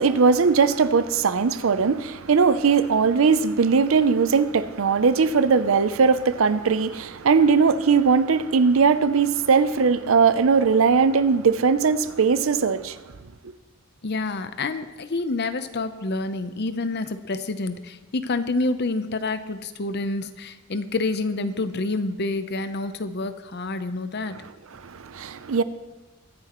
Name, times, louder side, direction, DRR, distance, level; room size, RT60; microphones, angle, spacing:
voice 1, 0.0-13.0 24.8-25.6, right 5 dB, 70° right, 0.5 m, -19 dB
voice 2, 14.0-24.4, left 3 dB, 50° left, 0.7 m, -28 dB
22.5 x 9.8 x 3.1 m
head